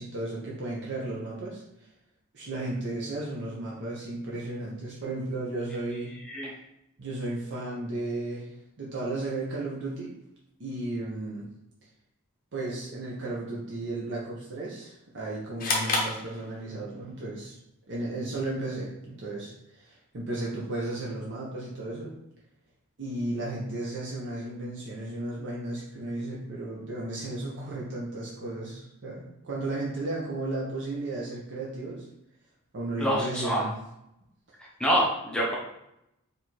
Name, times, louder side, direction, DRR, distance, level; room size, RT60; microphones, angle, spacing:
voice 1, 0.0-1.6 2.3-6.1 7.0-8.5 8.8-10.1 10.6-11.5 12.5-17.6 17.9-22.1 23.0-32.1 32.7-33.7, right 2 dB, 55° right, -5 dB, 0.7 m, -34 dB
sound 1, 15.6-17.0, left 3 dB, 40° left, 0.7 m, -30 dB
voice 2, 33.0-33.6 34.8-35.6, equal, 5° left, -4 dB, 0.6 m, -26 dB
4.3 x 2.6 x 3.0 m, 0.83 s
head